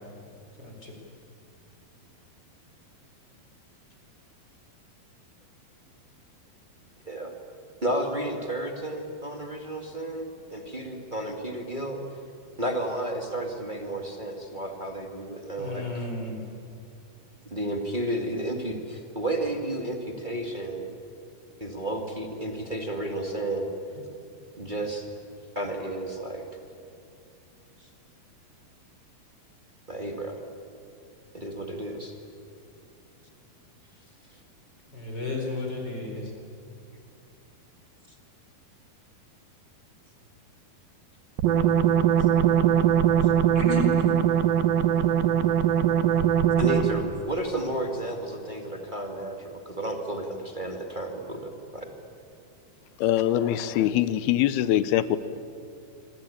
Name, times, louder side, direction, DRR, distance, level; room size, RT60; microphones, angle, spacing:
voice 1, 7.8-12.0 12.6-16.0 17.4-20.9 21.6-23.7 24.6-25.0 25.5-26.4 27.8-27.9 29.9-30.4 31.3-32.1 43.2-43.3 46.6-51.8, right 1 dB, 20° right, 2 dB, 1.4 m, -32 dB
voice 2, 15.6-16.3 34.9-36.2 43.5-44.1, left 2 dB, 25° left, 1 dB, 4.8 m, -32 dB
sound 1, 41.4-47.1, right 9 dB, 70° right, 2.9 m, -21 dB
voice 3, 53.0-55.2, left 12 dB, 85° left, 14 dB, 2.9 m, -23 dB
26.0 x 25.5 x 8.7 m, 2.4 s
omnidirectional pair, 4.4 m